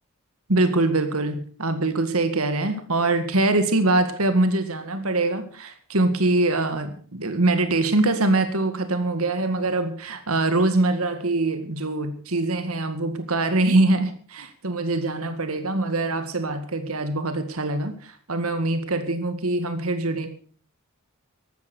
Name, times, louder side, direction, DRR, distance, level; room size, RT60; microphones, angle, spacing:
voice 1, 0.5-20.3, right 2 dB, 75° right, 9 dB, 2.0 m, -23 dB
14.5 x 12.0 x 6.1 m, 0.43 s
head